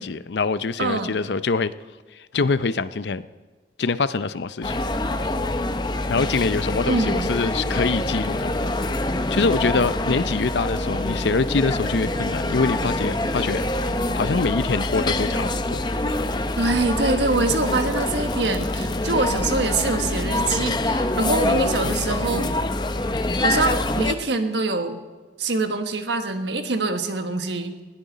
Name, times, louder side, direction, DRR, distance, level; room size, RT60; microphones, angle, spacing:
voice 1, 0.0-1.7 2.3-3.3 3.8-4.8 6.1-8.5 9.3-13.9 14.1-15.8 21.8-22.0, left 4 dB, 80° left, 14 dB, 0.6 m, -24 dB
voice 2, 0.8-1.1 6.9-7.3 16.6-22.5 23.4-25.0 25.4-27.7, right 3 dB, 80° right, 7 dB, 1.3 m, -24 dB
sound 1, 4.6-24.1, left 2 dB, 25° left, 0.7 m, -25 dB
20.0 x 17.0 x 4.1 m, 1.3 s
head